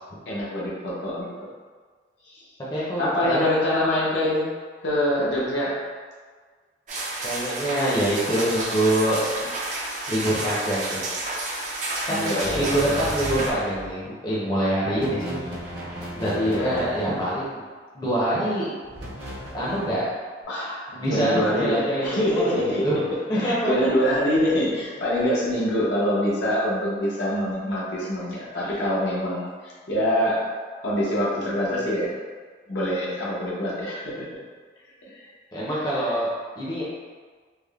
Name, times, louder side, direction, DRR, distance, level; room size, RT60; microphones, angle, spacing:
voice 1, 0.3-1.3 2.2-2.5 3.0-4.4 4.8-5.7 12.1-12.9 16.4-16.8 20.5-23.0 23.3-30.4 30.8-32.1 32.7-34.4 35.1-35.3 35.9-36.0, left 1 dB, 80° left, -6 dB, 0.7 m, -25 dB
voice 2, 2.7-3.5 7.2-9.5 10.1-11.0 12.1-15.4 16.1-17.6 17.9-18.7 19.5-20.1 20.9-22.9 23.3-23.9 35.5-36.3 36.6-36.8, right 1 dB, 20° left, -8 dB, 0.6 m, -25 dB
sound 1, 6.9-13.5, right 2 dB, 40° right, 0.4 m, -30 dB
sound 2, 12.4-14.0 14.8-17.5 18.8-20.0, equal, 75° right, 0.9 m, -36 dB
3.4 x 2.1 x 2.3 m, 1.5 s
head